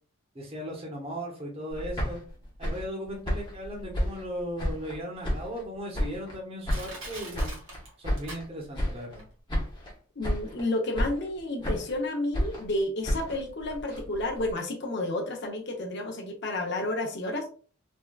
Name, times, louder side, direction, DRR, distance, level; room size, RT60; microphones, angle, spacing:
voice 1, 0.3-2.2 2.6-7.6 8.0-9.2, equal, 25° right, 0 dB, 0.8 m, -37 dB
sound 1, 1.7-5.0 5.2-6.4 6.7-8.5 8.7-9.2 9.5-10.0 10.2-10.7 10.9-12.0 12.3-14.5, equal, 20° left, 0.8 m, -32 dB
Crushing, 6.7-8.9 9.2-9.3, right 2 dB, 60° right, 1.3 m, -42 dB
voice 2, 10.2-17.5, left 2 dB, 50° left, 2 dB, 0.7 m, -31 dB
3.4 x 2.2 x 2.3 m, 0.40 s
head